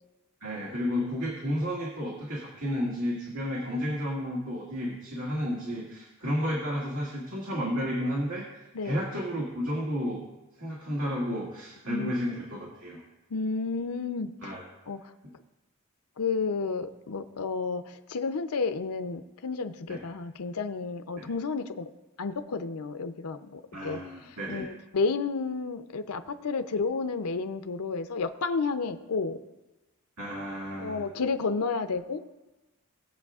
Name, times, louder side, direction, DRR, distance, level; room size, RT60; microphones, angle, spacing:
voice 1, 0.4-10.2 10.6-13.0 14.4-14.6 19.9-20.0 21.2-21.3 23.7-24.7 30.2-31.0, equal, 80° right, -4 dB, 2.0 m, -32 dB
voice 2, 13.3-14.6 14.9-15.1 16.2-21.9 22.2-29.4 30.8-32.2, left 4 dB, 90° left, 9 dB, 0.6 m, -31 dB
19.5 x 7.5 x 2.4 m, 1.1 s
head